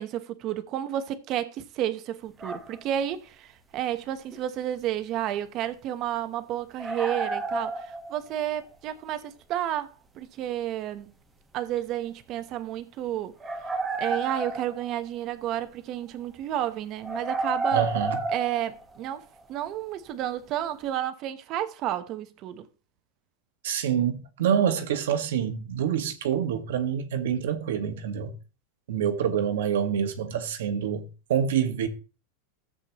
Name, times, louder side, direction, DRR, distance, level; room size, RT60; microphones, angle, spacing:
voice 1, 0.0-11.1 11.5-13.7 14.0-17.8 18.3-22.7, right 11 dB, 40° right, 1.0 m, -31 dB
sound 1, 2.4-2.8 4.3-4.4 6.8-8.4 11.8-11.9 13.4-15.2 17.0-19.4, right 3 dB, 15° right, 1.4 m, -31 dB
voice 2, 17.7-18.2 23.6-28.3 28.9-31.9, right 8 dB, 85° right, 1.6 m, -26 dB
14.0 x 7.9 x 3.0 m
supercardioid pair, 145°, 0 cm